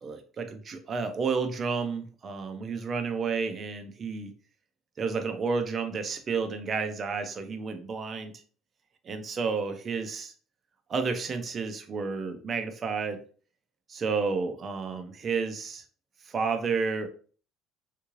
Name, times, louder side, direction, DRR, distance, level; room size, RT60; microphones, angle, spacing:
voice 1, 0.0-4.3 5.0-8.3 9.0-10.3 10.9-13.2 13.9-15.8 16.3-17.1, right 5 dB, 25° right, 7 dB, 0.4 m, -31 dB
3.6 x 2.4 x 3.0 m, 0.41 s
cardioid pair, 175°, 0 cm